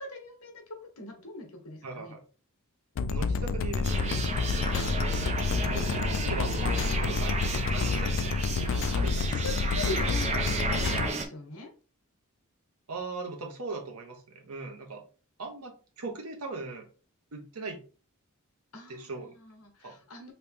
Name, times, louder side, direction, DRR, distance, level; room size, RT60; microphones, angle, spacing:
voice 1, 0.0-2.2 8.6-8.9 9.2-11.7 18.7-20.3, left 3 dB, 80° left, 3 dB, 1.1 m, -41 dB
voice 2, 1.8-2.2 3.1-4.2 5.7-7.4 7.7-8.4 8.9-9.4 12.9-15.0 15.4-16.9 17.3-17.8 18.9-19.3 19.8-19.9, right 3 dB, 75° right, 3 dB, 0.9 m, -39 dB
sound 1, 3.0-11.1, left 4 dB, 60° left, 0.3 m, -29 dB
sound 2, 3.8-11.3, right 4 dB, 30° right, 0.5 m, -34 dB
3.1 x 2.9 x 3.4 m, 0.37 s
head